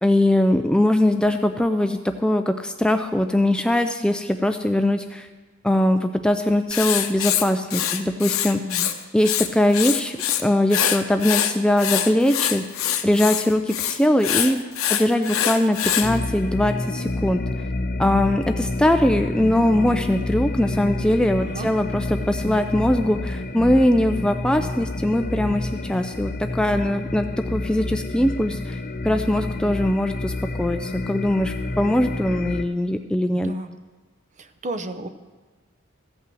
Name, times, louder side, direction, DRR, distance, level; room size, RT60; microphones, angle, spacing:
voice 1, 0.0-5.3 5.6-8.6 9.1-14.6 14.9-17.4 18.0-28.8 29.0-33.5, left 1 dB, 5° left, 7 dB, 0.3 m, -21 dB
Writing, 6.7-8.9 9.2-10.4 10.7-16.1, left 10 dB, 80° left, 0.8 m, -24 dB
voice 2, 8.6-8.9 21.4-21.7 33.3-33.7 34.4-35.1, right 2 dB, 35° right, 10 dB, 0.7 m, -33 dB
sound 1, 16.0-32.6, left 2 dB, 45° left, 0.6 m, -29 dB
15.0 x 5.6 x 7.6 m, 1.3 s
head